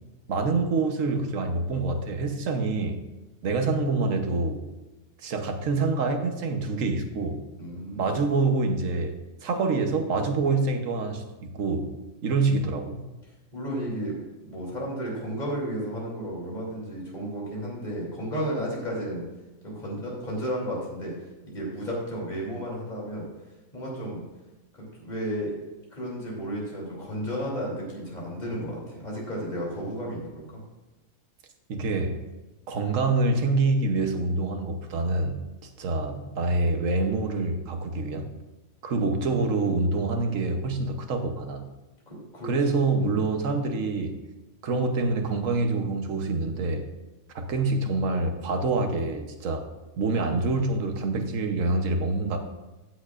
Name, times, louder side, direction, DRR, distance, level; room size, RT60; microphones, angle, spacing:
voice 1, 0.3-3.0 3.4-4.6 5.2-7.4 8.0-9.1 9.4-11.9 12.2-13.0 31.7-32.2 32.7-38.3 38.8-41.7 42.4-44.2 44.6-46.9 47.3-49.7 50.0-52.4, right 3 dB, 85° right, 5 dB, 1.3 m, -26 dB
voice 2, 7.6-8.1 13.5-14.2 14.4-19.2 19.6-21.1 21.4-23.3 23.7-24.2 24.9-25.5 25.9-30.4 42.1-43.3, equal, 35° left, -4 dB, 3.1 m, -33 dB
15.0 x 7.7 x 2.5 m, 1.1 s
omnidirectional pair, 1.3 m